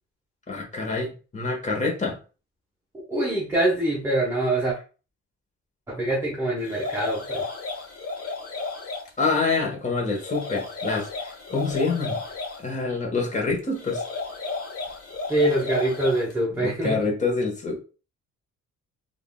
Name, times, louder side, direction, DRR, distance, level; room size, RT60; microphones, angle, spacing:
voice 1, 0.5-2.2 9.2-12.2 12.6-14.0 16.5-17.8, left 3 dB, 25° left, 0 dB, 1.2 m, -26 dB
voice 2, 3.1-4.8 5.9-7.4 15.3-17.1, right 1 dB, 10° right, -4 dB, 0.9 m, -24 dB
sound 1, 6.6-9.1 10.1-12.6 13.7-16.3, left 3 dB, 50° left, 1.1 m, -33 dB
3.5 x 2.5 x 2.2 m, 0.34 s
cardioid pair, 90°, 30 cm